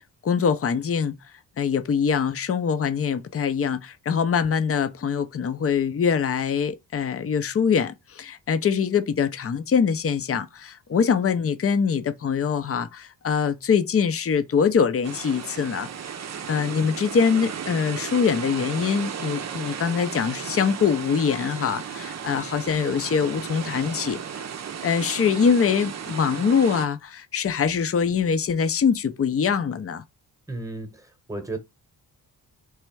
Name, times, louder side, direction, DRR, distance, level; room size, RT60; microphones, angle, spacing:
voice 1, 0.2-1.2 1.6-15.9 16.5-24.2 24.8-30.0, left 6 dB, 35° left, 0.6 m, -23 dB
sound 1, 15.0-26.9, right 7 dB, 45° right, 0.6 m, -35 dB
voice 2, 30.5-31.6, right 2 dB, 10° right, 1.1 m, -34 dB
3.4 x 3.2 x 4.6 m
cardioid pair, 105°, 40 cm